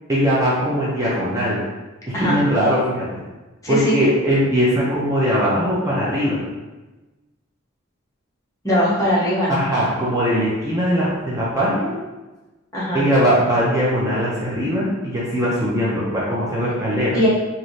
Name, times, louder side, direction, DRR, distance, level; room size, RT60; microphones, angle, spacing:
voice 1, 0.1-1.6 2.2-3.1 3.7-6.4 9.5-12.0 12.9-17.2, equal, 15° right, -7 dB, 0.5 m, -20 dB
voice 2, 3.6-4.0 8.6-9.5 12.7-13.1 17.1-17.3, equal, 15° left, -8 dB, 0.8 m, -19 dB
3.1 x 2.6 x 2.6 m, 1.2 s
head